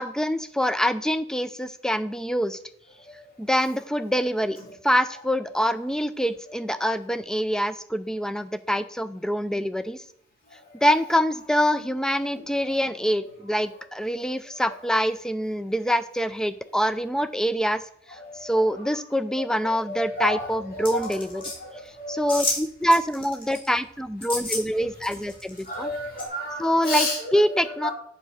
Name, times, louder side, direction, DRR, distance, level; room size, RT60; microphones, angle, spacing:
voice 1, 0.0-2.6 3.4-4.6 4.8-10.0 10.8-17.8 18.1-21.4 22.1-25.9 26.6-27.9, equal, 5° left, 12 dB, 0.4 m, -25 dB
voice 2, 18.1-18.9 19.9-20.5 20.7-22.4 25.6-27.9, left 1 dB, 45° left, -3 dB, 3.3 m, -32 dB
sound 1, 20.9-21.6 22.3-22.6 22.9-23.7 24.2-24.6 25.0-25.7 26.2-26.3, left 2 dB, 25° left, 2.8 m, -30 dB
7.8 x 4.9 x 6.4 m, 0.69 s
head